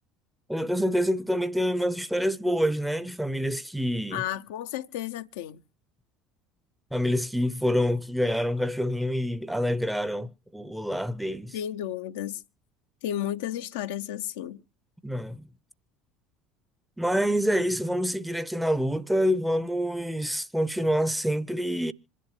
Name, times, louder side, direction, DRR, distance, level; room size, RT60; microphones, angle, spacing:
voice 1, 0.5-4.2 6.9-11.6 15.0-15.5 17.0-21.9, equal, 5° right, 0.8 m, -27 dB
voice 2, 4.1-5.6 11.5-12.4 13.0-14.6, left 11 dB, 70° left, 0.6 m, -33 dB
26.5 x 11.0 x 3.2 m
figure-of-eight pair, 65°, 0 cm